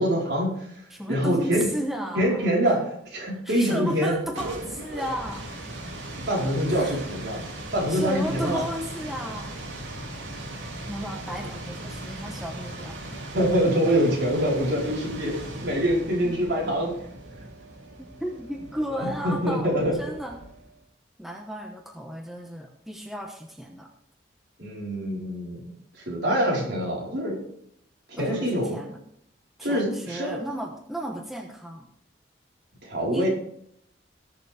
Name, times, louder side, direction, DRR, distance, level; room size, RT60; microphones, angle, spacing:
voice 1, 0.0-0.8 1.1-1.6 2.1-4.1 6.3-7.4 7.7-8.6 13.3-16.9 19.0-19.9 24.6-25.6 25.9-27.4 28.1-28.7 29.6-30.4 32.8-33.3, equal, 65° right, -3 dB, 4.6 m, -25 dB
voice 2, 0.9-2.7 3.4-5.5 6.7-7.1 7.9-9.7 10.9-13.0 16.2-16.4 18.0-20.4 21.2-23.9 28.2-29.0 29.6-31.9 33.1-33.3, equal, ahead, 2 dB, 1.0 m, -34 dB
sound 1, 4.1-20.8, right 1 dB, 85° right, 2.4 m, -38 dB
19.0 x 6.9 x 3.5 m, 0.69 s
head